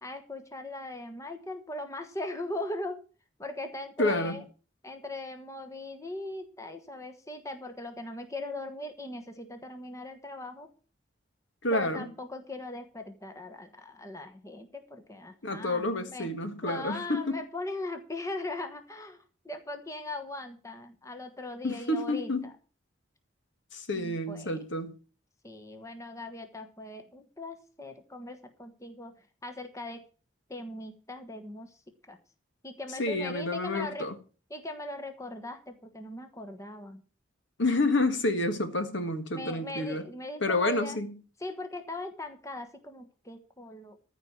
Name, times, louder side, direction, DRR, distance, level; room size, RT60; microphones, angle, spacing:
voice 1, 0.0-3.0 3.4-4.4 4.8-10.7 11.7-16.3 16.6-22.5 23.9-24.5 25.4-29.1 29.4-30.0 30.5-31.8 32.1-32.2 32.6-34.1 34.5-37.0 39.3-41.0 41.4-44.0, left 2 dB, 15° left, 1.2 m, -39 dB
voice 2, 4.0-4.4 11.6-12.1 15.4-17.4 21.6-22.4 23.7-25.0 33.0-34.2 37.6-40.0 40.4-41.2, left 2 dB, 65° left, 1.6 m, -29 dB
14.5 x 4.8 x 8.6 m
head